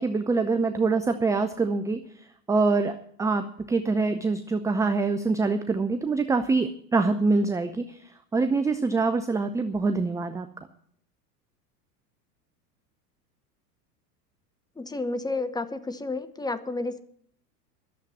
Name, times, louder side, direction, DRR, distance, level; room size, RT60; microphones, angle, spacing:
voice 1, 0.0-2.0 2.5-8.0 8.3-10.5, right 3 dB, 5° right, 9 dB, 0.4 m, -25 dB
voice 2, 14.8-17.0, left 3 dB, 10° left, 10 dB, 0.9 m, -31 dB
12.0 x 7.4 x 9.7 m, 0.64 s
hypercardioid pair, 85°, 48 cm